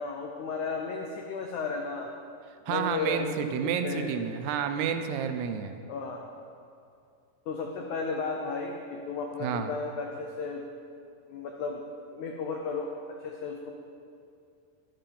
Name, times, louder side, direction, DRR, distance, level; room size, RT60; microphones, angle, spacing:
voice 1, 0.0-2.1 2.7-3.3 3.6-4.1 5.9-6.2 7.5-10.6 11.3-11.8 12.1-13.7, left 4 dB, 85° left, 2 dB, 1.7 m, -34 dB
voice 2, 2.7-5.8 9.4-9.7, right 7 dB, 80° right, 8 dB, 2.8 m, -30 dB
12.0 x 11.5 x 5.3 m, 2.5 s
omnidirectional pair, 4.7 m